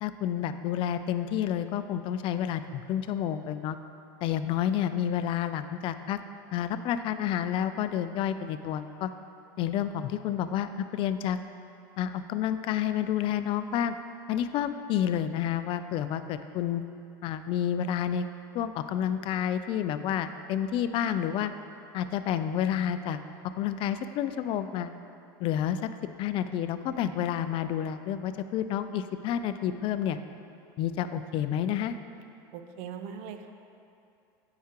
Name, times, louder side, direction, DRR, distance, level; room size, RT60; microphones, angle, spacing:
voice 1, 0.0-3.8 4.2-6.2 6.5-9.1 9.6-11.4 12.0-14.0 14.3-16.8 17.2-18.3 18.5-21.5 21.9-23.2 23.6-24.9 25.4-25.9 26.2-30.2 30.8-32.0, left 10 dB, 45° left, 11 dB, 0.3 m, -29 dB
voice 2, 32.5-33.5, right 7 dB, 65° right, 7 dB, 0.5 m, -40 dB
9.2 x 4.8 x 2.9 m, 2.6 s
supercardioid pair, 110°, 12 cm